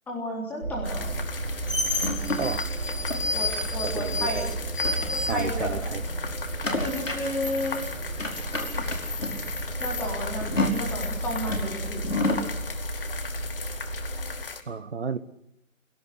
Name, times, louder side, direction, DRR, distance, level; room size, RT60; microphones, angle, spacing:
voice 1, 0.1-1.2 3.3-4.5 5.1-5.8 6.8-7.8 9.8-12.0, left 1 dB, 5° left, -2 dB, 3.8 m, -32 dB
sound 1, 0.6-14.4, right 2 dB, 70° right, 4.9 m, -33 dB
sound 2, 0.8-14.6, left 5 dB, 40° left, 2.2 m, -38 dB
sound 3, 1.2-5.8 6.1-12.5, left 2 dB, 65° left, 5.3 m, -30 dB
voice 2, 3.8-4.5 5.3-6.0 6.8-6.9 14.7-15.2, right 5 dB, 55° right, 12 dB, 1.5 m, -32 dB
27.0 x 17.5 x 8.3 m, 0.77 s
figure-of-eight pair, 150°, 40 cm